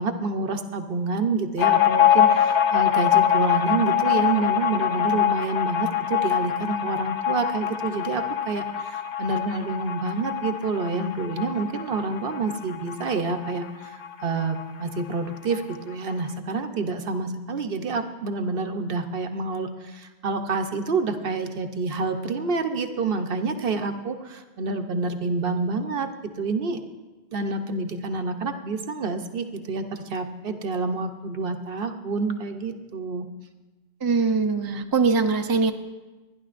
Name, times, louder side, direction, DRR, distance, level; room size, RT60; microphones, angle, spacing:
voice 1, 0.0-26.1 26.4-26.8 27.3-33.3, right 3 dB, 60° right, 7 dB, 1.0 m, -28 dB
sound 1, 1.6-14.7 15.0-15.1 15.4-16.1, left 9 dB, 60° left, 0.9 m, -24 dB
voice 2, 34.0-35.7, right 4 dB, 25° right, 6 dB, 0.5 m, -22 dB
29.0 x 10.5 x 2.5 m, 1.2 s
omnidirectional pair, 1.1 m